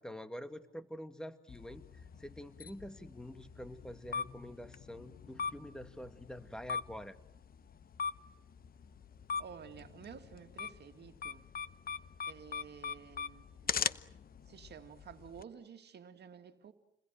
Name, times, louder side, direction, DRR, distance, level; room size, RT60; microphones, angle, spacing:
voice 1, 0.0-1.8 2.2-7.2, equal, 5° left, 2.0 m, -46 dB
sound 1, 1.5-15.4, left 6 dB, 50° left, 1.0 m, -42 dB
voice 2, 9.4-11.5 12.3-13.8 14.5-16.7, right 7 dB, 55° right, 2.4 m, -52 dB
29.5 x 21.0 x 9.0 m
cardioid pair, 90°, 20 cm